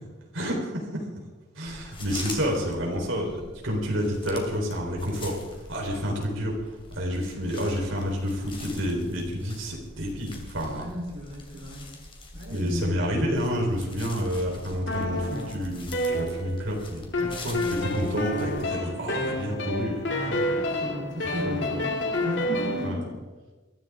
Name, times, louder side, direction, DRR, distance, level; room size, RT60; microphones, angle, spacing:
voice 1, 0.3-1.0 1.5-6.6 6.9-10.9 12.5-20.8 21.4-21.7 22.8-23.0, equal, 80° right, -1 dB, 4.1 m, -29 dB
sound 1, 1.6-18.6, left 2 dB, 25° left, 2.7 m, -44 dB
voice 2, 10.7-11.9 12.3-13.0 20.8-23.1, equal, 65° right, -2 dB, 3.8 m, -34 dB
sound 2, 14.9-16.7 17.1-22.9, left 1 dB, 60° left, 2.1 m, -29 dB
22.5 x 14.5 x 3.7 m, 1.2 s
head